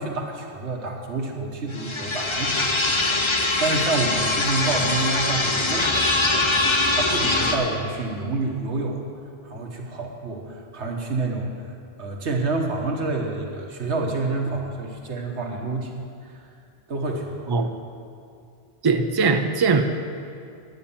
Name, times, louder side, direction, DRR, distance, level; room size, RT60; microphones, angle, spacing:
voice 1, 0.0-6.0 6.3-9.0 9.4-11.5 12.0-15.9 16.2-16.4 16.9-17.6, right 3 dB, 85° right, 1 dB, 1.6 m, -28 dB
sound 1, 1.7-7.6, left 2 dB, 30° left, 0.9 m, -22 dB
voice 2, 18.8-19.8, right 4 dB, 25° right, 6 dB, 0.5 m, -20 dB
10.0 x 9.9 x 7.1 m, 2.4 s
omnidirectional pair, 1.1 m